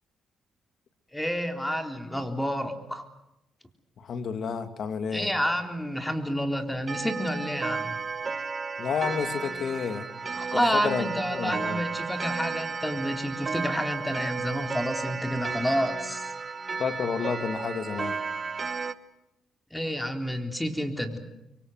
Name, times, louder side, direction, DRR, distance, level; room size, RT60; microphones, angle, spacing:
voice 1, 1.1-3.0 5.1-8.0 10.3-16.3 19.7-21.2, equal, 5° left, 5 dB, 3.7 m, -29 dB
voice 2, 4.0-5.3 8.8-10.3 10.5-11.8 16.8-18.2, left 6 dB, 65° left, 9 dB, 2.3 m, -31 dB
Clock, 6.9-18.9, right 4 dB, 40° right, 1.3 m, -33 dB
25.0 x 23.5 x 7.9 m, 0.88 s
supercardioid pair, 65°, 0 cm